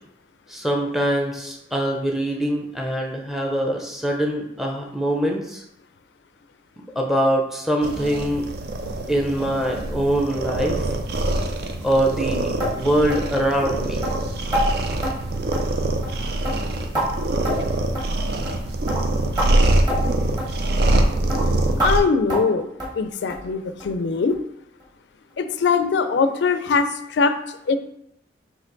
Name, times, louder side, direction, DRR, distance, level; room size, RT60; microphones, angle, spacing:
voice 1, 0.5-5.6 7.0-8.4 9.1-10.8 11.8-14.0, right 1 dB, ahead, 0 dB, 0.5 m, -23 dB
sound 1, 7.8-22.0, right 1 dB, 60° right, 0.4 m, -24 dB
sound 2, 12.6-12.8 13.1-13.3 13.6-13.7 14.0-14.2 14.5-14.7 15.0-15.2 15.5-15.8 16.0-16.2 16.5-17.1 17.5-17.7 18.0-18.1 18.5-18.6 18.9-19.0 19.4-19.5 19.9-20.0 20.4-20.5 20.9-21.0 21.3-21.4 21.8-21.9 22.3-22.5 22.8-23.0 23.3-23.5 23.8-23.9 24.3-24.4 24.8-24.9, equal, 25° right, 1.4 m, -26 dB
voice 2, 21.7-22.7 22.9-24.4 25.4-27.4 27.7-27.8, left 5 dB, 70° left, 10 dB, 0.4 m, -22 dB
4.3 x 2.9 x 3.9 m, 0.79 s
head